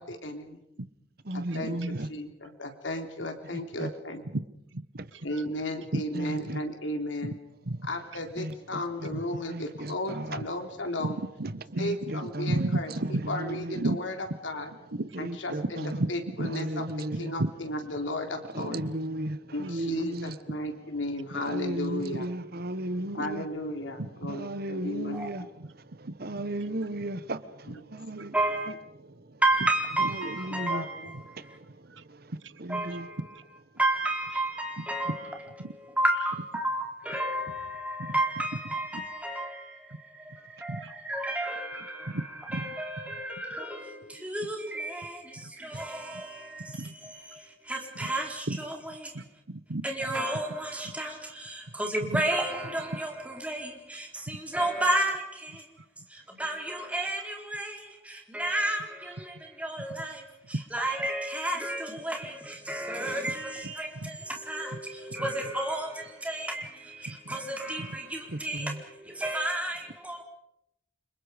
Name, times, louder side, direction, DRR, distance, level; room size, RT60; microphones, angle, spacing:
voice 1, 0.1-0.6 1.3-4.2 5.2-7.3 7.9-11.2 11.8-12.9 13.3-14.1 14.4-14.7 15.2-16.8 17.2-18.8 19.5-22.2 23.1-25.2 27.7-27.8 30.7-31.1, left 1 dB, 90° left, 3.6 m, -34 dB
voice 2, 1.3-2.1 3.8-3.9 6.1-6.6 8.4-8.8 9.5-10.4 11.8-12.5 13.3-13.8 15.1-15.6 16.5-17.3 18.5-20.3 21.3-23.4 24.3-25.4 26.0-28.3 30.2-30.8 31.3-32.3 32.6-33.1 45.7-45.8 68.3-68.8, right 1 dB, 55° right, 1.2 m, -35 dB
voice 3, 5.1-5.5 5.9-6.0 6.4-6.5 7.2-7.3 7.6-7.9 9.0-9.2 10.3-10.4 11.0-13.3 13.7-14.0 15.0-15.2 15.9-16.5 17.4-17.5 18.6-19.0 19.3-19.4 21.3-21.4 22.1-22.2 24.0-24.4 25.6-25.7 26.0-26.1 28.2-28.3 31.1-31.2 31.9-32.0 32.4-32.5 33.3-33.4 34.8-35.2 35.6-35.7 38.0-38.1 38.9-39.0 40.6-40.9 41.8-42.2 42.5-42.6 44.1-44.2 45.4-45.5 46.7-46.9 48.0-48.1 48.5-48.6 49.1-49.8 50.1-50.2 52.1-52.2 63.6-64.1 67.3-67.4 67.8-68.0, right 2 dB, 80° right, 1.2 m, -33 dB
voice 4, 28.3-28.7 29.4-31.6 32.7-33.2 33.8-35.2 35.8-49.2 49.8-55.8 56.1-70.2, right 1 dB, 10° right, 4.2 m, -32 dB
29.5 x 25.5 x 5.2 m
head